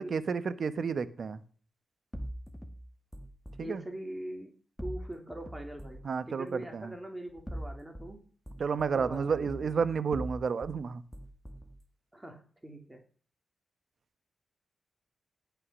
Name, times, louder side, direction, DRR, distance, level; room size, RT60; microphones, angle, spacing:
voice 1, 0.0-1.4 3.6-3.8 6.0-6.9 8.6-11.0, right 5 dB, 65° right, 13 dB, 1.1 m, -31 dB
sound 1, 2.1-3.6 4.8-6.1 7.3-8.1 8.5-10.8 11.1-11.8, equal, 10° left, 1.7 m, -42 dB
voice 2, 3.6-4.5 4.8-8.2 8.9-9.7 12.1-13.0, right 1 dB, 15° right, 3 dB, 3.0 m, -42 dB
17.0 x 5.8 x 6.3 m, 0.42 s
supercardioid pair, 50°, 0 cm